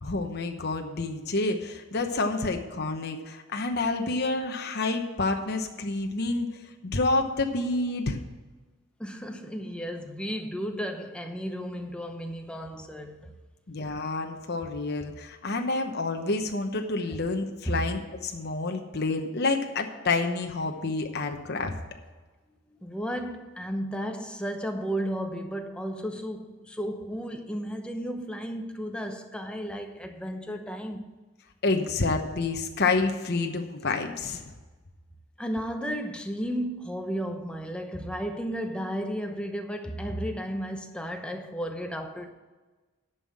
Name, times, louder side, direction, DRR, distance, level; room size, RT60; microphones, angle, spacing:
voice 1, 0.0-6.5 6.8-8.2 13.7-21.7 31.6-34.5, left 3 dB, 50° left, 1.0 m, -28 dB
voice 2, 9.0-13.4 17.7-17.8 22.8-31.1 35.4-42.3, equal, 5° left, 0.8 m, -33 dB
11.0 x 5.7 x 7.8 m
head